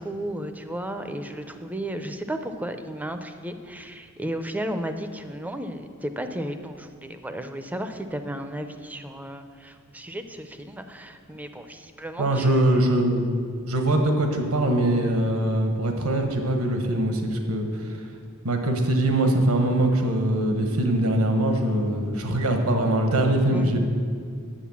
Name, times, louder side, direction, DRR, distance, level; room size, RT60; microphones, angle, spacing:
voice 1, 0.0-12.8 23.5-23.8, right 1 dB, 5° right, 8 dB, 0.6 m, -34 dB
voice 2, 12.2-13.3 13.7-17.9 18.4-23.8, right 1 dB, 85° right, 4 dB, 1.3 m, -22 dB
10.5 x 7.9 x 7.2 m, 2.1 s
head